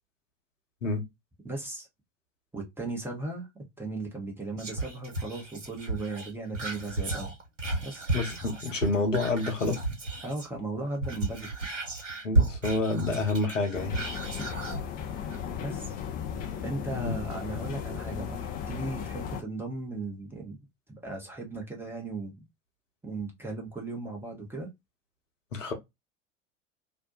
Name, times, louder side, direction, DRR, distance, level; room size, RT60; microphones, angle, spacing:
voice 1, 1.4-1.9 2.5-7.3 7.8-8.1 10.2-11.5 15.6-16.0 16.6-18.4 18.7-20.6 20.9-22.5 23.0-24.7, right 2 dB, 5° right, 0.7 m, -36 dB
Whispering, 4.6-10.6 10.9-14.8 15.3-15.4, right 2 dB, 75° right, 1.0 m, -32 dB
voice 2, 8.1-9.8 12.2-14.0 16.9-17.1 25.5-25.7, left 3 dB, 80° left, 0.8 m, -28 dB
sound 1, 13.7-19.4, left 8 dB, 25° left, 0.4 m, -36 dB
2.6 x 2.1 x 2.5 m
figure-of-eight pair, 80°, 37 cm